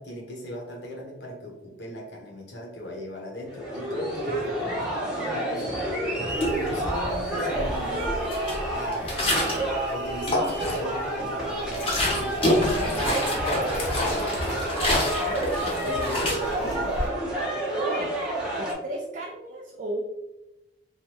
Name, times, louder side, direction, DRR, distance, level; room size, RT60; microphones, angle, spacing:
voice 1, 0.0-5.8 6.5-8.1 8.7-9.2 9.9-12.4 12.7-14.4 15.8-17.0, left 1 dB, 75° left, -1 dB, 0.8 m, -38 dB
sound 1, 3.5-18.7, right 1 dB, 5° right, 0.7 m, -29 dB
voice 2, 4.3-5.3 12.8-13.0 15.2-16.3 17.7-18.1 18.5-20.0, right 1 dB, 45° right, -1 dB, 0.4 m, -36 dB
sound 2, 6.3-7.2 7.5-9.7 10.1-11.0 11.4-17.1, left 1 dB, 30° left, 0.7 m, -28 dB
3.1 x 2.2 x 2.8 m, 0.93 s
head